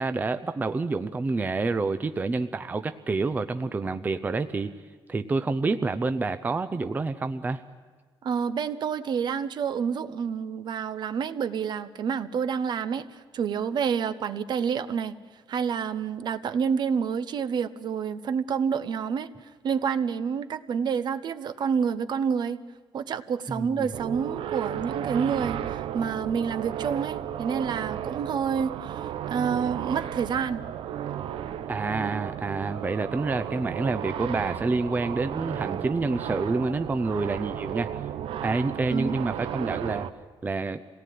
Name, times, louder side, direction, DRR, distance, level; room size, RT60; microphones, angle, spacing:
voice 1, 0.0-4.7 5.1-7.6 23.5-23.9 31.4-38.1 38.4-40.1 40.4-40.8, right 3 dB, 20° right, 10 dB, 0.6 m, -28 dB
voice 2, 8.2-13.0 13.3-15.1 15.5-19.3 19.6-22.6 22.9-29.0 29.3-30.6 38.9-39.3, right 7 dB, 55° right, 12 dB, 1.0 m, -28 dB
sound 1, 23.9-40.1, right 10 dB, 80° right, 0.8 m, -34 dB
26.0 x 18.0 x 9.4 m, 1.4 s
cardioid pair, 155°, 9 cm